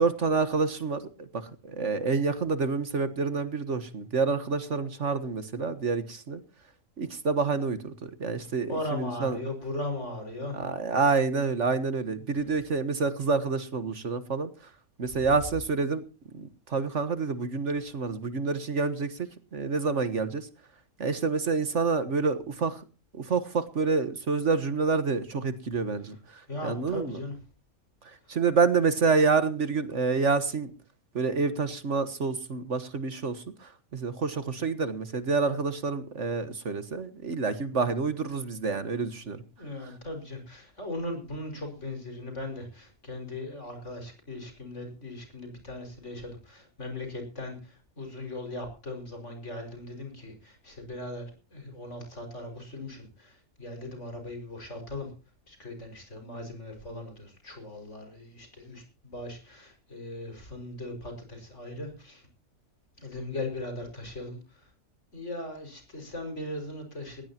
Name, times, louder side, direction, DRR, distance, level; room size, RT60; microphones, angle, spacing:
voice 1, 0.0-6.4 7.0-9.4 10.5-14.5 15.0-16.0 16.3-19.2 19.5-20.5 21.0-22.8 23.1-27.2 28.3-30.7 31.1-39.4 39.8-39.9, right 4 dB, 55° right, 12 dB, 1.6 m, -28 dB
voice 2, 8.7-10.6 26.5-27.3 39.6-51.2 51.5-55.1 55.5-62.2 63.0-64.6 65.1-67.2, left 1 dB, 55° left, 5 dB, 5.8 m, -38 dB
20.0 x 16.0 x 2.9 m, 0.34 s
omnidirectional pair, 1.5 m